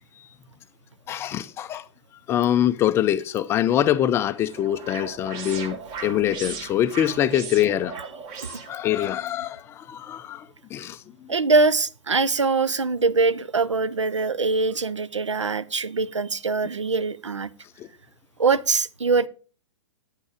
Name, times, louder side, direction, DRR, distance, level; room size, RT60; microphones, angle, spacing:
voice 1, 1.1-1.8 2.3-7.9 8.4-10.5 10.7-11.0, left 11 dB, 15° left, 0.4 m, -24 dB
sound 1, 3.9-9.1, right 5 dB, 30° right, 1.7 m, -38 dB
voice 2, 11.3-17.5 18.4-19.3, right 4 dB, 80° right, 0.6 m, -23 dB
9.8 x 8.5 x 4.9 m
figure-of-eight pair, 115°, 15 cm